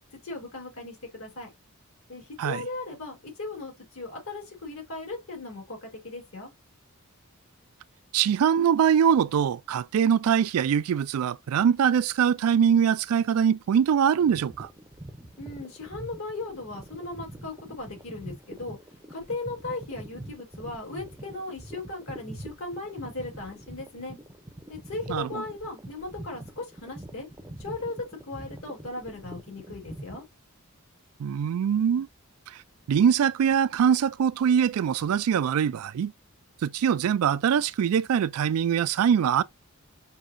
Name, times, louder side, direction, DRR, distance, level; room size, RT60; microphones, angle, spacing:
voice 1, 0.2-1.5 2.1-6.5 15.4-18.8 19.1-24.2 24.7-27.3 27.6-30.2, left 2 dB, 70° left, 3.1 m, -37 dB
voice 2, 8.1-14.7 25.1-25.4 31.2-32.1 32.5-32.6 32.9-36.1 36.6-39.4, right 8 dB, 75° right, 0.3 m, -23 dB
sound 1, 14.1-30.3, right 1 dB, 15° right, 0.6 m, -44 dB
6.0 x 2.7 x 2.5 m
head